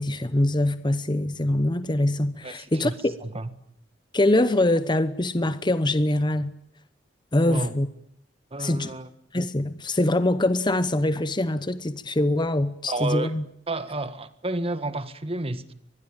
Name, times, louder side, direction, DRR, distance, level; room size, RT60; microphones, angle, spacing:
voice 1, 0.0-3.1 4.1-6.5 7.3-7.9 8.6-8.9 9.3-13.4, left 1 dB, 25° left, 1.0 m, -23 dB
voice 2, 2.4-3.5 7.4-7.8 8.5-9.1 12.9-13.3 13.7-15.7, right 2 dB, 30° right, 1.8 m, -31 dB
24.5 x 21.0 x 9.0 m
head